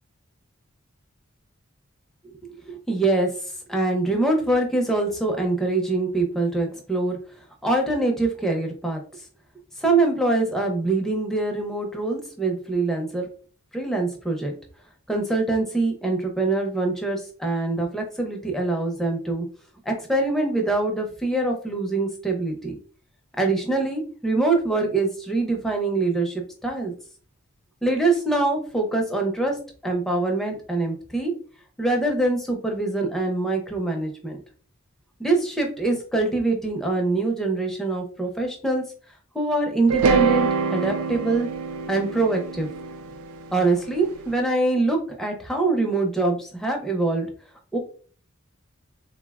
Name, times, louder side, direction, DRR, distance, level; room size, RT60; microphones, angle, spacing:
voice 1, 2.5-3.4 3.7-7.2 7.6-9.0 9.8-13.3 13.7-14.5 15.1-19.5 19.9-22.7 23.4-26.9 27.8-31.3 31.8-34.4 35.2-38.8 39.3-41.5 41.9-42.7 43.5-47.3 47.7-47.8, right 2 dB, ahead, 1 dB, 0.5 m, -24 dB
sound 1, 39.9-44.1, right 5 dB, 90° right, 0.4 m, -25 dB
3.7 x 2.0 x 2.3 m, 0.42 s
head